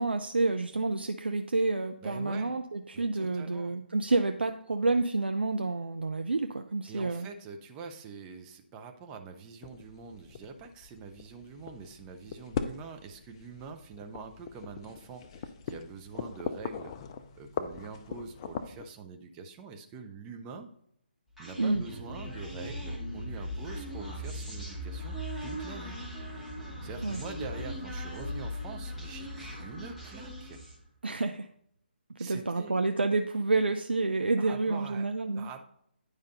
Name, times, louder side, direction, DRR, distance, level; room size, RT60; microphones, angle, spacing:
voice 1, 0.0-7.3 21.6-21.8 27.0-27.2 31.0-31.5 32.2-35.5, right 3 dB, 75° right, 7 dB, 0.5 m, -29 dB
voice 2, 2.0-2.6 2.9-3.7 6.9-16.9 17.4-20.7 21.4-26.0 26.8-30.6 32.2-32.8 34.4-35.1 35.3-35.6, right 4 dB, 15° right, 4 dB, 0.7 m, -45 dB
sound 1, 9.6-18.8, left 7 dB, 30° left, 0.5 m, -40 dB
Human voice, 21.4-30.8, equal, ahead, 1.9 m, -39 dB
9.7 x 5.1 x 4.1 m, 0.71 s
figure-of-eight pair, 145°, 6 cm